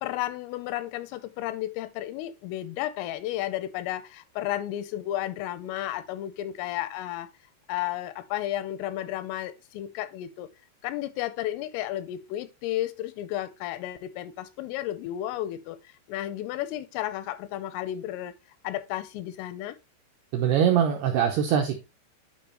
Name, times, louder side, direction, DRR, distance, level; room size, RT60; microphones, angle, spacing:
voice 1, 0.0-7.3 7.7-10.5 10.8-15.8 16.1-18.3 18.6-19.8, left 13 dB, 85° left, 3.2 m, -33 dB
voice 2, 20.3-21.8, right 9 dB, 85° right, 2.3 m, -22 dB
9.5 x 5.2 x 3.0 m
omnidirectional pair, 5.8 m